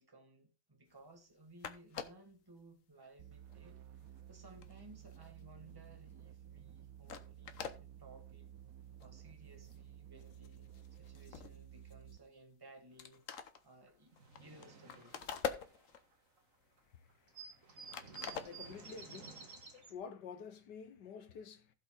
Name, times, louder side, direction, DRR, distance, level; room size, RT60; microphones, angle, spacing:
voice 1, 0.0-3.8 4.3-7.5 7.8-8.5 9.0-10.7 11.0-14.1 14.4-15.2, right 2 dB, 15° right, 1.6 m, -59 dB
sound 1, 1.3-1.4 1.6-2.3 3.0-3.1 3.5-5.9 6.2-6.4 6.8-6.9 7.1-7.8 8.4-8.5 8.9-9.1 9.5-9.9 10.1-12.4 12.7-12.8 13.0-16.2 16.6-17.6 17.9-19.0, left 7 dB, 55° left, 1.2 m, -45 dB
sound 2, 3.2-12.3, right 10 dB, 65° right, 0.9 m, -54 dB
sound 3, 13.6-13.7 13.9-16.4 16.8-16.9 17.1-19.9, right 5 dB, 50° right, 2.0 m, -53 dB
voice 2, 18.4-19.4 19.7-21.7, left 6 dB, 75° left, 1.7 m, -49 dB
15.5 x 5.4 x 3.8 m
omnidirectional pair, 1.9 m